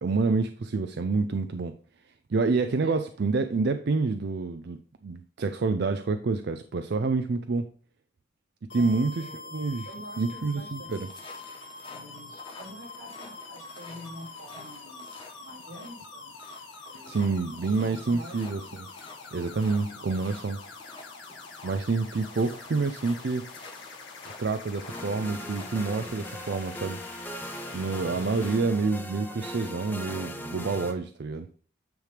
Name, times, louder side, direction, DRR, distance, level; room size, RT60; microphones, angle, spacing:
voice 1, 0.0-1.7 2.3-4.8 5.0-7.7 8.7-9.3 9.5-9.9 10.2-11.1 17.1-18.9 19.3-20.6 21.6-23.4 24.4-27.0 27.7-31.5, right 4 dB, 55° right, 9 dB, 0.4 m, -28 dB
voice 2, 2.8-3.1 8.8-9.6 9.8-11.1 11.9-15.0 15.4-16.3 16.9-17.2 17.6-18.6 19.7-19.9, equal, 80° right, -2 dB, 3.0 m, -47 dB
sound 1, 8.7-28.6, left 4 dB, 65° left, 1.7 m, -45 dB
sound 2, 10.9-26.1, left 3 dB, 30° left, 1.2 m, -50 dB
sound 3, 24.9-30.9, equal, 10° left, 0.7 m, -39 dB
9.3 x 3.4 x 5.0 m, 0.43 s
head